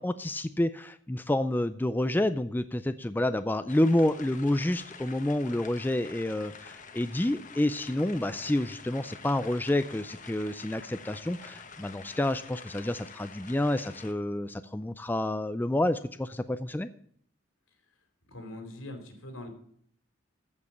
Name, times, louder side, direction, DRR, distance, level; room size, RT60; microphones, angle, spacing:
voice 1, 0.0-16.9, left 1 dB, 10° left, 11 dB, 0.4 m, -29 dB
sound 1, 3.7-14.1, left 5 dB, 40° left, 1.1 m, -47 dB
voice 2, 18.3-19.5, left 1 dB, 85° left, 6 dB, 2.9 m, -42 dB
14.5 x 5.4 x 7.2 m, 0.63 s
head